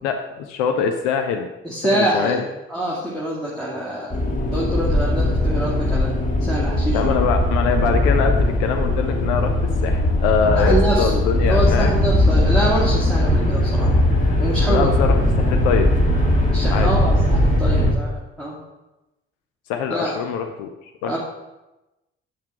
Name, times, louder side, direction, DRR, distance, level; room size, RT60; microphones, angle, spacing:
voice 1, 0.0-1.5 1.9-2.5 6.9-9.5 9.8-11.9 14.7-15.9 16.7-16.9 19.7-21.2, left 6 dB, 65° left, 5 dB, 0.7 m, -23 dB
voice 2, 1.6-2.4 2.7-4.2 4.5-6.1 6.4-7.1 10.5-13.9 14.4-14.9 16.5-18.6 19.9-20.2 21.0-21.2, right 1 dB, ahead, -5 dB, 2.0 m, -25 dB
sound 1, 4.1-17.9, left 1 dB, 25° left, 1.9 m, -19 dB
8.3 x 5.8 x 4.8 m, 1.0 s
figure-of-eight pair, 45°, 33 cm